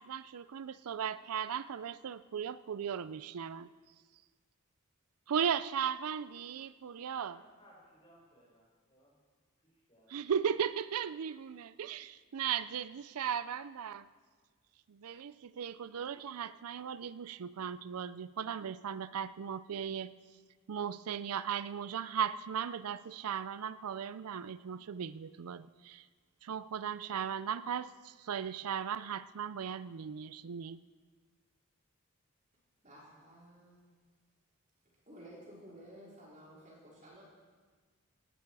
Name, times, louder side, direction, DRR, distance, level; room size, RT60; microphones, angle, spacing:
voice 1, 0.0-3.7 5.3-7.4 10.1-14.1 14.9-20.1 20.7-26.0 26.4-30.8, right 8 dB, 90° right, 16 dB, 0.4 m, -37 dB
voice 2, 7.3-9.2 9.6-10.3, equal, 25° left, -5 dB, 5.9 m, -63 dB
voice 3, 32.8-33.8 35.1-37.2, equal, 35° right, -5 dB, 4.4 m, -53 dB
18.0 x 13.0 x 4.8 m, 1.5 s
head